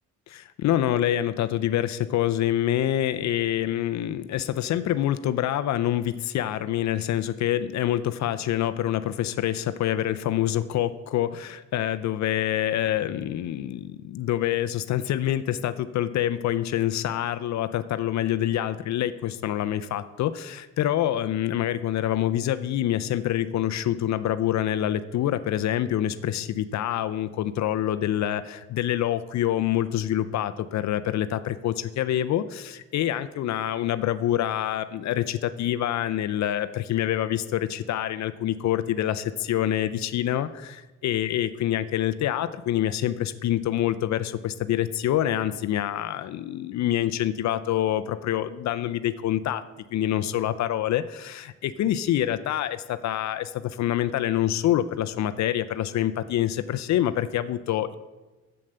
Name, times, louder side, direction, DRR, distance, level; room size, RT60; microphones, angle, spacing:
voice 1, 0.3-49.6 49.9-58.0, left 12 dB, 65° left, 12 dB, 0.5 m, -26 dB
7.8 x 7.3 x 6.7 m, 1.2 s
cardioid pair, 90°, 30 cm